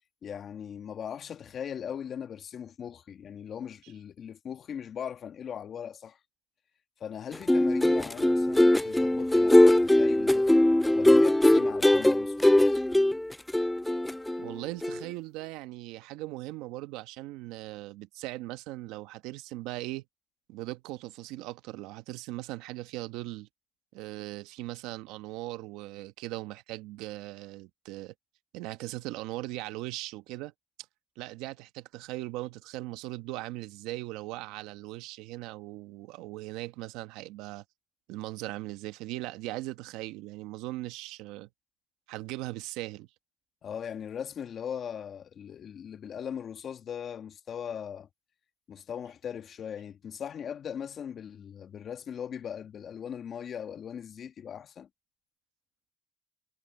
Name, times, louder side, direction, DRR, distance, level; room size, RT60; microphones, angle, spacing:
voice 1, 0.2-6.2 7.0-10.5 10.9-12.8 43.6-48.1 48.7-54.9, left 8 dB, 55° left, 1.5 m, -39 dB
sound 1, 7.3-14.5 14.8-15.0, left 1 dB, 10° left, 0.3 m, -21 dB
voice 2, 14.4-20.0 20.5-23.5 23.9-28.1 28.5-30.5 31.2-37.6 38.1-41.5 42.1-43.1, right 18 dB, 85° right, 1.1 m, -39 dB
supercardioid pair, 60°, 0 cm